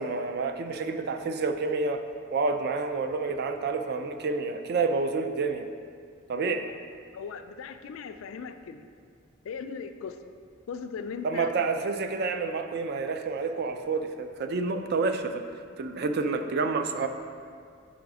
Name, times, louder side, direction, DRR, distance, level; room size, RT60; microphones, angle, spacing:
voice 1, 0.0-2.0 2.3-5.7 6.3-6.7 11.2-15.4 15.8-17.1, right 4 dB, 50° right, 7 dB, 0.4 m, -29 dB
voice 2, 7.1-8.9 9.4-10.2 10.7-11.5, left 6 dB, 75° left, 9 dB, 0.3 m, -38 dB
5.0 x 4.7 x 4.7 m, 2.2 s
head